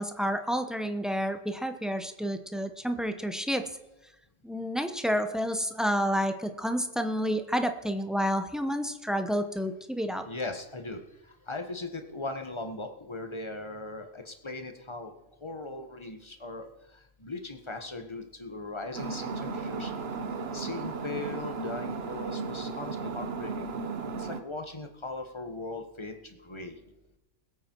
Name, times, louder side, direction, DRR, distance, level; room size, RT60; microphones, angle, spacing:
voice 1, 0.0-3.7 4.4-10.2, equal, ahead, 7 dB, 0.8 m, -30 dB
voice 2, 10.2-11.0 11.5-15.1 15.4-16.7 17.2-19.9 20.5-23.7 24.2-26.8, left 2 dB, 25° left, 6 dB, 1.3 m, -39 dB
sound 1, 18.9-24.4, right 4 dB, 55° right, 1.1 m, -35 dB
21.0 x 8.5 x 4.6 m, 0.94 s
omnidirectional pair, 1.3 m